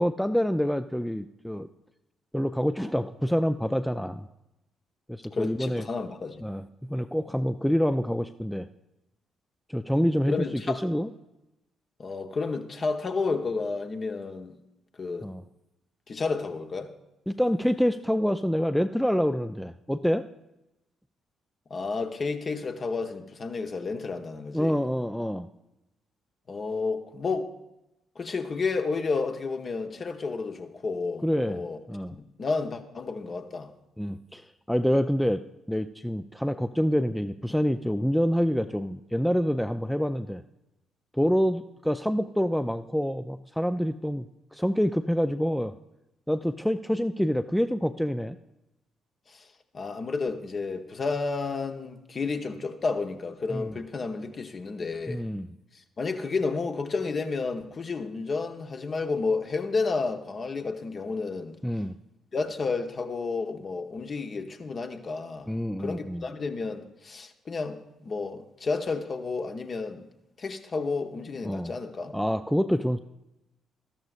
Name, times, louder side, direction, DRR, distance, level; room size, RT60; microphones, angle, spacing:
voice 1, 0.0-1.7 2.3-4.2 5.1-5.8 6.4-8.7 9.7-10.3 10.8-11.1 15.2-15.4 17.3-20.2 24.5-25.5 31.2-31.6 31.9-32.1 34.0-34.4 34.7-35.4 35.7-40.4 41.1-44.3 44.5-45.7 46.3-48.4 53.5-53.7 55.1-55.5 61.6-62.0 65.5-66.2 71.4-71.7 72.1-73.0, equal, 5° left, 0.4 m, -26 dB
voice 2, 5.3-6.4 10.3-10.8 12.0-14.5 15.0-15.3 16.1-16.9 21.7-24.8 26.5-27.5 28.1-31.8 32.1-33.7 49.3-49.5 49.7-55.2 55.7-61.6 62.3-65.5 65.8-70.1 70.4-72.1, left 4 dB, 40° left, 1.0 m, -31 dB
13.0 x 13.0 x 2.5 m
figure-of-eight pair, 45°, 0 cm